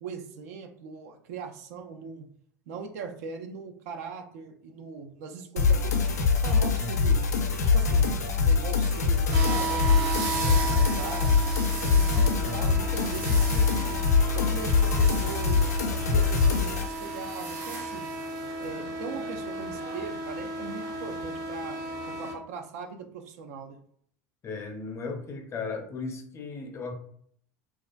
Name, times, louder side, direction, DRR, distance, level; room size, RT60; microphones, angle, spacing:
voice 1, 0.0-2.3 2.7-6.0 6.4-7.2 7.7-8.2 8.4-10.6 10.9-11.4 11.8-14.0 14.3-15.7 16.1-18.1 18.6-21.8 22.1-23.8, right 5 dB, 70° right, 5 dB, 0.4 m, -40 dB
sound 1, 5.6-16.9, left 5 dB, 90° left, 0.4 m, -24 dB
sound 2, 9.3-22.3, right 2 dB, 45° right, 0.8 m, -34 dB
voice 2, 24.4-26.9, left 4 dB, 35° left, 4 dB, 0.6 m, -36 dB
2.4 x 2.4 x 2.2 m, 0.63 s
hypercardioid pair, 75°, 9 cm